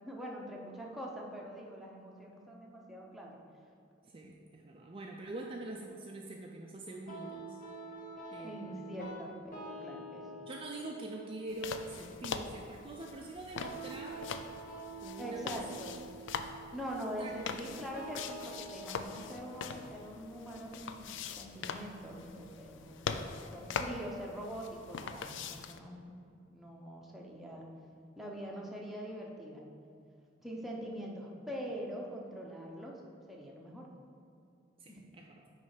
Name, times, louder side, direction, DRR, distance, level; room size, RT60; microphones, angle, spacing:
voice 1, 0.0-3.4 8.4-10.3 15.2-16.0 16.3-23.1 23.5-27.7 28.1-29.7 30.4-33.0 33.3-33.9 34.9-35.0, equal, ahead, -2 dB, 0.8 m, -43 dB
voice 2, 4.0-7.6 8.3-8.8 10.5-14.3 15.0-16.0 16.9-17.6 34.8-35.5, right 2 dB, 30° right, 0 dB, 0.4 m, -45 dB
sound 1, 7.1-22.0, right 2 dB, 45° left, 1.0 m, -48 dB
sound 2, 11.5-25.8, left 6 dB, 65° left, 0.4 m, -43 dB
9.4 x 3.2 x 4.9 m, 2.4 s
head